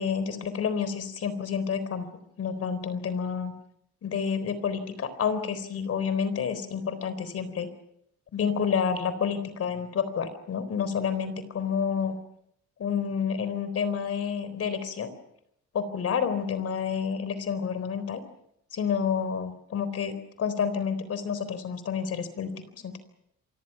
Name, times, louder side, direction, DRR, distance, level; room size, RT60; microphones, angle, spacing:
voice 1, 0.0-2.1 2.4-3.5 4.0-7.7 8.3-12.2 12.8-15.1 15.7-18.2 18.7-23.0, left 6 dB, 55° left, 13 dB, 4.0 m, -29 dB
28.0 x 24.5 x 5.9 m, 0.73 s
cardioid pair, 150°, 29 cm